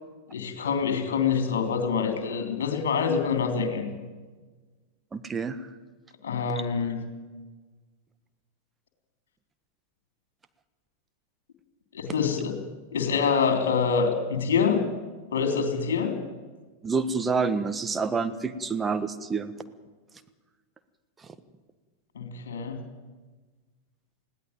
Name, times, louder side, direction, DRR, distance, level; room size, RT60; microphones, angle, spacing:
voice 1, 0.3-3.9 6.2-7.0 11.9-12.6 12.9-14.8 15.3-16.1 22.1-22.8, left 6 dB, 60° left, 5 dB, 3.4 m, -26 dB
voice 2, 5.1-5.6 16.8-19.5, right 4 dB, 15° right, 10 dB, 1.4 m, -28 dB
20.5 x 17.0 x 9.2 m, 1.3 s
figure-of-eight pair, 90°, 0 cm